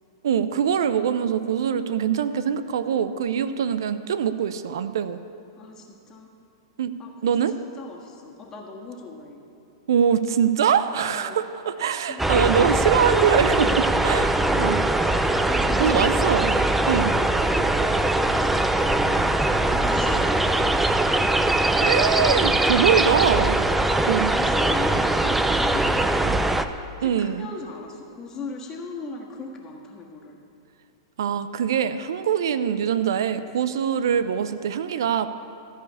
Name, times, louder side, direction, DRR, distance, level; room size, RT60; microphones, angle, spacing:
voice 1, 0.2-5.2 6.8-6.9 7.2-7.5 9.9-14.8 15.8-16.5 16.9-17.1 21.8-23.6 24.1-24.3 27.0-27.5 31.2-35.3, right 8 dB, 75° right, 12 dB, 0.5 m, -23 dB
voice 2, 5.6-6.3 7.0-7.3 7.8-9.4 11.0-11.4 12.1-12.3 14.1-14.6 14.9-16.4 17.0-21.2 23.5-30.4, left 3 dB, 25° left, 0 dB, 1.6 m, -38 dB
sound 1, 12.2-26.6, right 2 dB, 5° right, 0.5 m, -21 dB
14.0 x 5.0 x 8.3 m, 2.7 s
hypercardioid pair, 115°, 2 cm